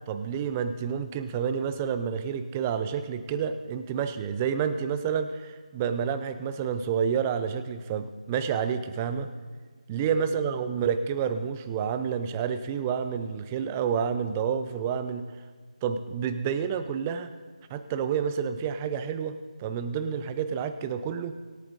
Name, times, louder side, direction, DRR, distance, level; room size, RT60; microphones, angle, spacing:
voice 1, 0.1-9.3 9.9-15.3 15.8-17.3 17.7-21.3, right 7 dB, 15° right, 11 dB, 0.5 m, -29 dB
25.0 x 8.7 x 3.8 m, 1.5 s
figure-of-eight pair, 160°, 4 cm